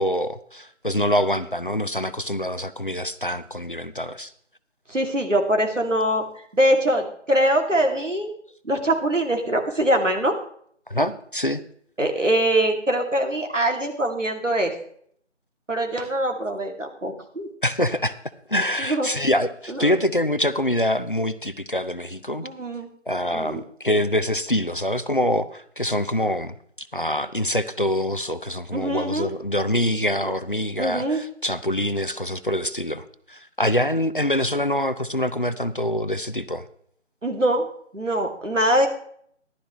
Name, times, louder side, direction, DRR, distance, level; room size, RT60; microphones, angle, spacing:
voice 1, 0.0-4.3 10.9-11.6 17.6-18.2 18.5-22.5 23.1-36.6, left 1 dB, 45° left, 13 dB, 0.6 m, -25 dB
voice 2, 4.9-6.3 6.5-8.3 8.6-10.4 12.0-14.7 15.7-17.5 18.8-19.1 19.7-20.0 22.4-22.9 23.3-23.6 28.7-29.3 30.2-30.3 30.8-31.2 37.2-37.7 37.9-38.9, right 1 dB, 85° right, 4 dB, 2.5 m, -23 dB
14.0 x 12.0 x 3.1 m, 0.63 s
figure-of-eight pair, 170°, 37 cm